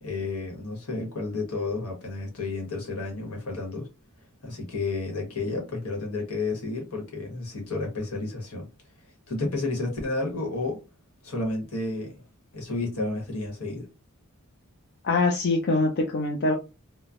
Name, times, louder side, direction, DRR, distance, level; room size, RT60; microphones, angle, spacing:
voice 1, 0.0-3.9 4.4-8.7 9.3-10.8 11.2-12.2 12.5-13.9, left 3 dB, 75° left, 1.3 m, -31 dB
voice 2, 15.0-16.5, left 3 dB, 50° left, 0.4 m, -23 dB
3.0 x 2.1 x 2.5 m
head